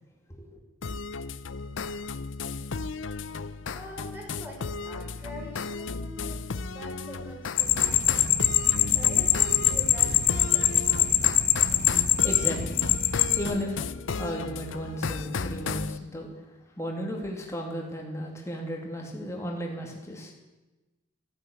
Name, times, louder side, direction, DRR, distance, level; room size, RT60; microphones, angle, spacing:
sound 1, 0.8-16.0, left 4 dB, 85° left, 0.6 m, -35 dB
voice 1, 3.7-4.6 4.8-6.4 6.7-8.2 8.5-11.1, equal, 10° right, -2 dB, 4.8 m, -44 dB
sound 2, 7.6-13.4, left 9 dB, 45° left, 1.1 m, -23 dB
voice 2, 12.2-12.9 13.4-13.8 14.2-16.3 16.8-20.3, equal, 15° left, 0 dB, 2.6 m, -34 dB
15.0 x 9.7 x 8.3 m, 1.1 s
head